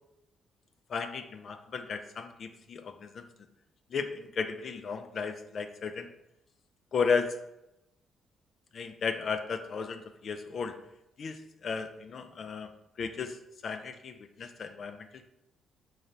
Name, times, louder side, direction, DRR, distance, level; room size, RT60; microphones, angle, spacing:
voice 1, 0.9-3.2 3.9-6.1 6.9-7.4 8.7-10.8 11.2-12.7 13.0-13.4 13.6-15.3, left 5 dB, 50° left, 9 dB, 0.3 m, -34 dB
3.8 x 3.2 x 2.7 m, 0.86 s
cardioid pair, 90°, 0 cm